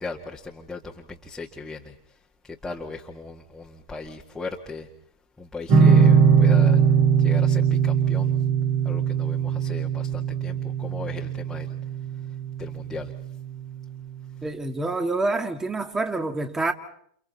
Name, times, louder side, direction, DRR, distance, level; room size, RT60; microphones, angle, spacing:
voice 1, 0.0-1.9 2.4-4.9 5.4-6.8 7.2-8.3 8.8-11.7 12.6-13.1, left 3 dB, 10° left, 1.9 m, -37 dB
sound 1, 5.7-12.9, right 6 dB, 45° right, 3.7 m, -20 dB
voice 2, 14.4-16.7, right 2 dB, 10° right, 2.2 m, -27 dB
29.5 x 29.0 x 4.3 m
hypercardioid pair, 100°, 4 cm